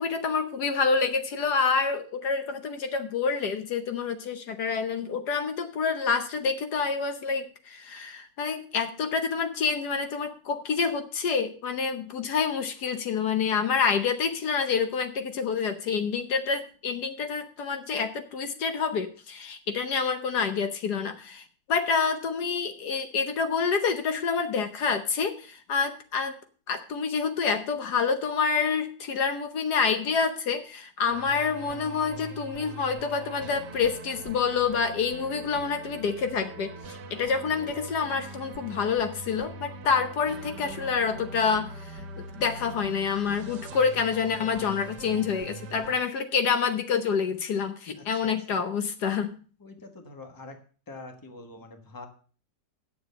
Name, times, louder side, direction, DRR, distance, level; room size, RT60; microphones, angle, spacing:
voice 1, 0.0-26.4 26.7-49.3, left 5 dB, 65° left, 8 dB, 1.4 m, -27 dB
sound 1, 31.1-45.9, right 3 dB, 70° right, 1.6 m, -42 dB
voice 2, 47.9-48.6 49.6-50.6 50.9-52.1, left 2 dB, 15° left, 5 dB, 1.1 m, -45 dB
9.3 x 7.0 x 6.7 m, 0.42 s
omnidirectional pair, 1.9 m